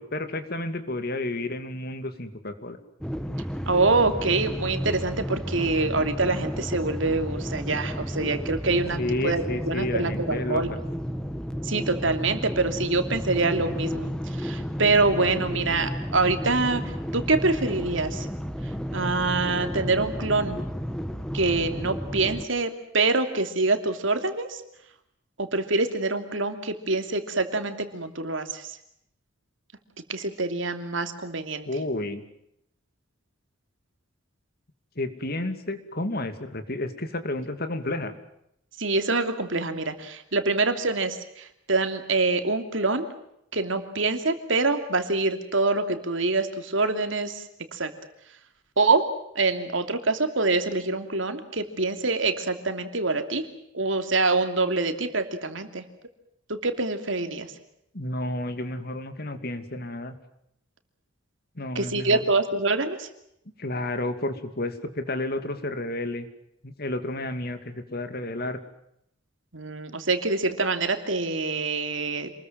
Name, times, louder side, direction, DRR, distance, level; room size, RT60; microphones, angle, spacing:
voice 1, 0.0-2.8 9.0-10.8 31.7-32.2 35.0-38.1 57.9-60.1 61.6-62.2 63.6-66.3 66.6-68.6, left 1 dB, 50° left, 9 dB, 2.6 m, -31 dB
sound 1, 3.0-22.4, equal, 5° left, 1.4 m, -32 dB
voice 2, 3.7-10.7 11.6-16.8 17.1-18.3 18.9-20.6 21.3-24.6 25.4-28.7 30.1-31.7 38.8-43.1 43.5-47.4 47.7-47.9 48.8-49.1 49.3-53.5 53.7-55.8 56.5-57.5 61.7-63.1 69.5-72.3, right 3 dB, 70° right, 7 dB, 2.9 m, -25 dB
28.0 x 21.5 x 7.5 m, 0.77 s
head